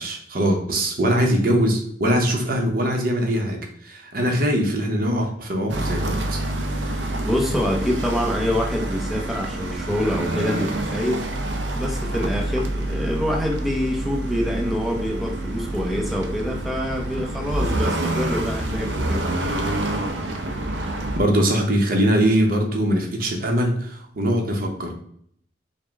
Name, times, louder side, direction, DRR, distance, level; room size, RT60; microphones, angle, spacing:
voice 1, 0.0-6.4 20.8-24.9, equal, 55° right, 2 dB, 0.8 m, -22 dB
sound 1, 5.7-21.2, right 1 dB, 90° right, 0.6 m, -27 dB
voice 2, 6.9-11.2 11.7-19.2, left 1 dB, ahead, -2 dB, 0.7 m, -26 dB
4.9 x 2.2 x 3.5 m, 0.63 s
head